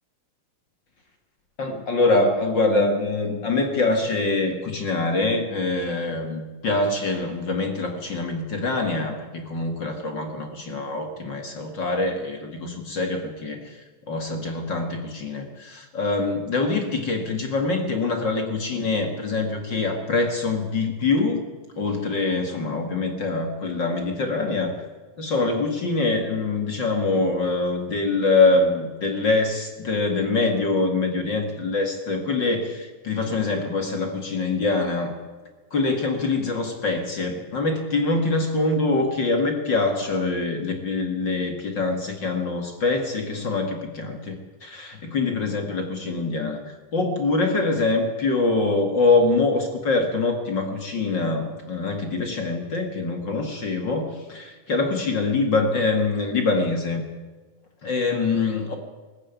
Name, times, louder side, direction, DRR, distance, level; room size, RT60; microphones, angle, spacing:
voice 1, 1.6-21.4 21.8-24.8 25.2-35.2 35.7-57.0 57.8-58.7, left 3 dB, 40° left, 5 dB, 2.0 m, -24 dB
20.0 x 14.5 x 9.4 m, 1.4 s
omnidirectional pair, 4.1 m